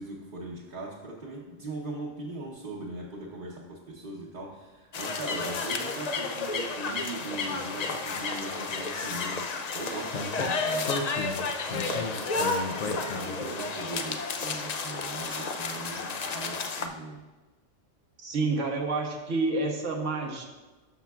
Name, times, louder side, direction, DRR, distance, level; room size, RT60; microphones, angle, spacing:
voice 1, 0.0-17.2, right 2 dB, 45° right, -4 dB, 0.9 m, -40 dB
sound 1, 4.9-16.9, left 4 dB, 55° left, 0.4 m, -32 dB
Speech, 10.1-13.5, left 4 dB, 75° left, 1.0 m, -35 dB
voice 2, 18.2-20.4, right 3 dB, 75° right, 2 dB, 1.3 m, -29 dB
12.5 x 5.7 x 2.3 m, 1.2 s
omnidirectional pair, 1.3 m